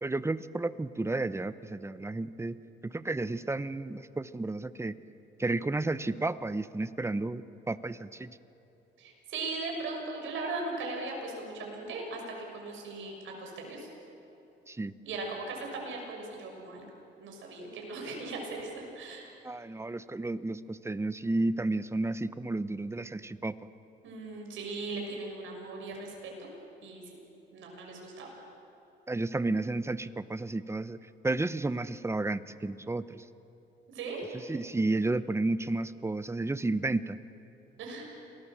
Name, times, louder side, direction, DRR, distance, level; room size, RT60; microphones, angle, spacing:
voice 1, 0.0-2.6 2.8-4.9 5.4-8.3 14.7-14.9 19.4-23.5 29.1-31.0 31.2-33.2 34.5-37.2, right 2 dB, 15° right, 14 dB, 0.8 m, -32 dB
voice 2, 9.0-13.9 15.0-16.8 17.2-19.3 24.0-26.5 26.8-27.2 27.5-28.3 33.9-34.2 37.8-38.1, right 3 dB, 80° right, 0 dB, 6.3 m, -38 dB
28.0 x 19.5 x 7.4 m, 2.9 s
cardioid pair, 90°, 20 cm